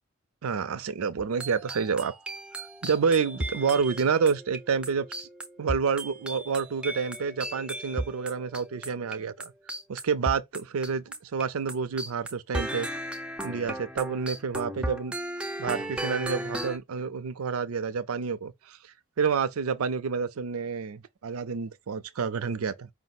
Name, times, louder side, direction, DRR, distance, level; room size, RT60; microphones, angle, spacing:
voice 1, 0.4-2.1 2.6-5.3 5.6-9.5 9.9-12.9 13.4-15.1 15.6-18.8 19.2-22.9, right 5 dB, 90° right, 0.5 m, -29 dB
sound 1, 1.2-11.4 11.7-16.8, right 1 dB, 5° right, 0.3 m, -36 dB
5.0 x 2.0 x 4.1 m
head